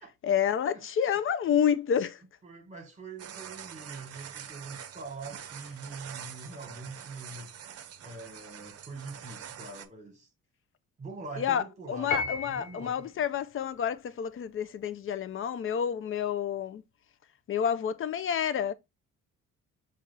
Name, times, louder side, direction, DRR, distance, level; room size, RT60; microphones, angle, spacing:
voice 1, 0.2-2.2 11.4-16.8 17.5-18.7, left 8 dB, 45° left, 0.5 m, -29 dB
voice 2, 2.4-7.5 8.0-10.3 11.0-13.1, right 3 dB, 25° right, 1.3 m, -44 dB
sound 1, 3.2-9.9, right 9 dB, 55° right, 0.6 m, -45 dB
Piano, 12.1-13.0, left 4 dB, 75° left, 1.1 m, -33 dB
5.8 x 2.4 x 3.1 m
cardioid pair, 90°, 30 cm